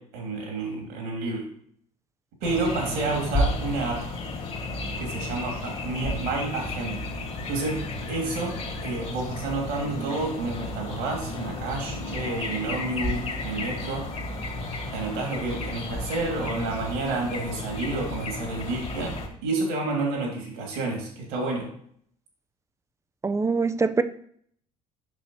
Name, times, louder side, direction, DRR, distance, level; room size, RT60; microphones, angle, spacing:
voice 1, 0.0-1.5 2.4-4.0 5.0-7.0 7.5-14.1 14.9-19.1 19.4-21.7, right 3 dB, 70° right, 2.9 m, -30 dB
sound 1, 2.4-19.3, left 2 dB, 35° left, 2.0 m, -33 dB
voice 2, 23.2-24.0, right 4 dB, 15° right, 0.6 m, -23 dB
8.3 x 6.3 x 3.1 m
hypercardioid pair, 60°, 18 cm